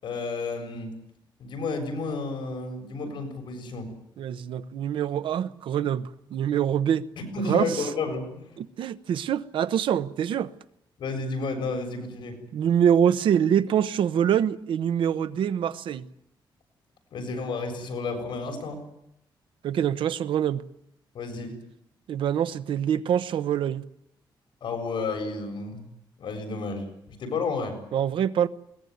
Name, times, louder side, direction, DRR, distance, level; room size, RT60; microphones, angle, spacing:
voice 1, 0.0-0.9 1.4-3.9 7.2-8.5 11.0-12.4 17.1-18.8 21.1-21.5 24.6-25.9 26.2-26.8 27.2-27.8, left 3 dB, 70° left, 7.1 m, -31 dB
voice 2, 4.2-7.1 7.5-7.9 8.6-10.5 12.5-16.1 19.6-20.6 22.1-23.8 27.9-28.5, right 9 dB, 85° right, 1.0 m, -25 dB
21.5 x 19.0 x 9.5 m
wide cardioid pair, 165°, 8 cm